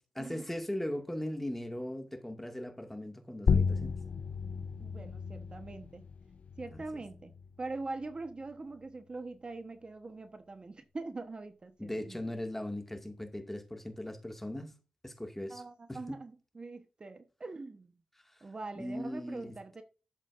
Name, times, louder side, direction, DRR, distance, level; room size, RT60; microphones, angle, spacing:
voice 1, 0.2-4.0 6.7-7.0 11.8-14.8 15.0-15.6 15.9-16.2 18.8-19.5, left 1 dB, 10° left, 2.2 m, -39 dB
sound 1, 3.5-8.5, left 5 dB, 70° left, 0.7 m, -34 dB
voice 2, 4.8-6.1 6.6-7.3 7.6-12.3 15.5-17.9 18.4-19.8, right 3 dB, 40° right, 1.2 m, -43 dB
11.5 x 7.5 x 2.6 m
cardioid pair, 50°, 2 cm